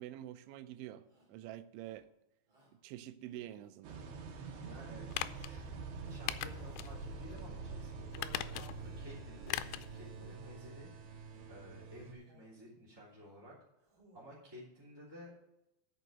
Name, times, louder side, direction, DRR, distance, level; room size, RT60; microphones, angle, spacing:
voice 1, 0.0-2.1 2.8-4.0, right 13 dB, 90° right, 3.0 m, -47 dB
Shout, 1.0-1.4 1.8-2.1 2.5-2.8 3.3-4.0 4.4-4.8 5.1-5.5 5.9-7.1 7.4-7.9 8.3-8.7 9.1-9.7 10.1-10.8 11.3-11.7 12.1-12.6 12.9-13.5 13.8-14.5, right 1 dB, 30° right, 3.1 m, -68 dB
sound 1, 3.8-12.1, right 4 dB, 70° right, 2.9 m, -46 dB
voice 2, 4.6-5.7 6.0-11.2 11.5-13.5 14.1-15.3, left 1 dB, 5° right, 2.0 m, -54 dB
sound 2, 5.1-5.5 6.3-6.9 7.3-7.4 8.1-8.9 9.5-9.9 10.2-10.3, left 15 dB, 85° left, 2.5 m, -39 dB
9.2 x 6.5 x 6.9 m
omnidirectional pair, 5.2 m